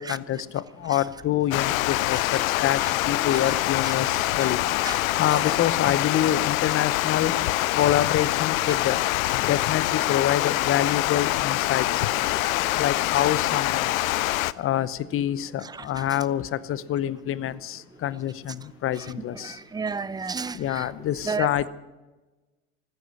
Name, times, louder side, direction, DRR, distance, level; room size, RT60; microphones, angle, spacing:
voice 1, 0.0-2.2 2.6-2.8 3.1-4.8 5.2-7.3 7.7-9.0 9.4-11.8 12.8-13.9 14.6-19.5 20.6-21.7, left 11 dB, 30° left, 0.8 m, -26 dB
Water, 1.5-14.5, left 17 dB, 70° left, 0.6 m, -25 dB
voice 2, 15.6-16.0 19.3-20.9 21.2-21.7, right 5 dB, 10° right, 0.6 m, -32 dB
15.0 x 13.5 x 7.1 m
hypercardioid pair, 95°, 43 cm